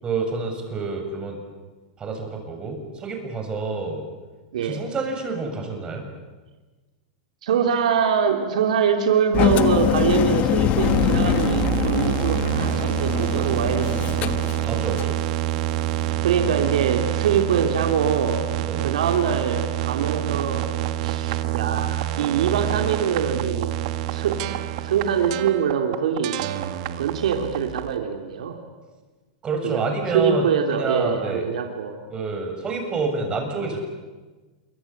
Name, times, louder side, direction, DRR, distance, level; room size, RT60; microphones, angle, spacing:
voice 1, 0.0-1.4 2.0-4.0 4.6-6.1 14.7-15.2 18.7-18.9 29.4-31.4 32.1-33.8, right 4 dB, 25° right, 3 dB, 7.3 m, -28 dB
voice 2, 4.5-4.8 7.4-14.3 16.2-18.4 18.8-20.7 21.0-23.7 24.1-24.5 24.8-26.4 27.0-28.6 29.6-31.9, right 7 dB, 80° right, 4 dB, 3.0 m, -23 dB
Engine, 9.3-15.2, left 12 dB, 40° left, 1.5 m, -23 dB
sound 1, 10.8-27.9, right 13 dB, 60° right, 1.6 m, -26 dB
27.0 x 24.0 x 8.6 m, 1.3 s
hypercardioid pair, 125°, 4 cm